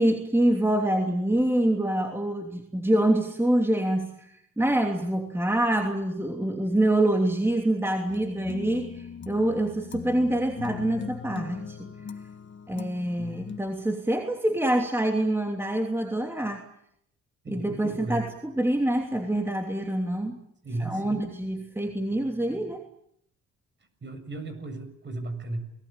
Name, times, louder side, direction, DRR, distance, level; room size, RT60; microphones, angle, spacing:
voice 1, 0.0-11.9 12.7-16.6 17.5-20.4 20.8-22.9, right 1 dB, 10° right, 3 dB, 3.0 m, -26 dB
sound 1, 8.1-13.6, left 6 dB, 40° left, 1.6 m, -39 dB
voice 2, 17.4-18.3 20.6-21.2 24.0-25.6, right 2 dB, 40° right, 9 dB, 7.1 m, -35 dB
29.0 x 19.5 x 9.0 m, 0.72 s
cardioid pair, 90°, 30 cm